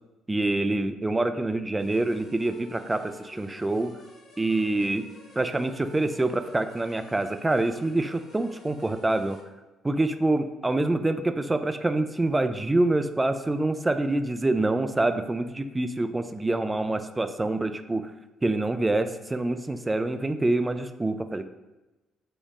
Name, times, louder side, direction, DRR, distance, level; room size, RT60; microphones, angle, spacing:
voice 1, 0.3-3.9 4.4-5.1 5.4-9.4 9.8-18.1 18.4-21.5, right 2 dB, 20° right, 8 dB, 0.3 m, -26 dB
sound 1, 1.8-9.4, left 2 dB, 55° left, 0.9 m, -51 dB
4.8 x 2.0 x 3.5 m, 1.1 s
figure-of-eight pair, 50°, 0 cm